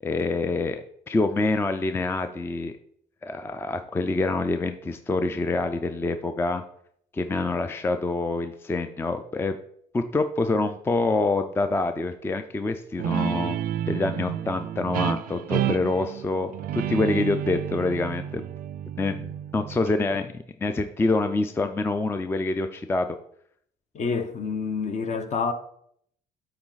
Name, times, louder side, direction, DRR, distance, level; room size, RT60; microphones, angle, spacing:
voice 1, 0.0-2.7 3.2-6.6 7.1-9.6 9.9-13.6 13.9-18.4 19.0-23.1, left 3 dB, 15° left, 0.4 m, -26 dB
Guitar, 13.0-20.2, right 10 dB, 60° right, 0.4 m, -30 dB
voice 2, 23.9-25.5, left 5 dB, 45° left, 0.8 m, -28 dB
8.7 x 4.0 x 4.0 m
cardioid pair, 110°, 17 cm